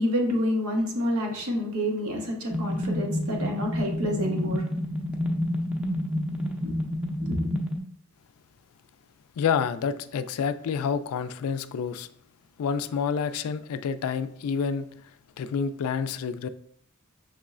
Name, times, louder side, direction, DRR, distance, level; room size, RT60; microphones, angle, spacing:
voice 1, 0.0-4.6 6.6-6.8 7.2-7.5, left 1 dB, 90° right, 1 dB, 1.0 m, -28 dB
sound 1, 2.5-7.8, left 1 dB, 5° right, 0.4 m, -29 dB
voice 2, 9.4-12.1 12.6-14.9 15.4-16.5, left 6 dB, 90° left, 12 dB, 0.3 m, -28 dB
6.1 x 3.1 x 2.4 m, 0.64 s
head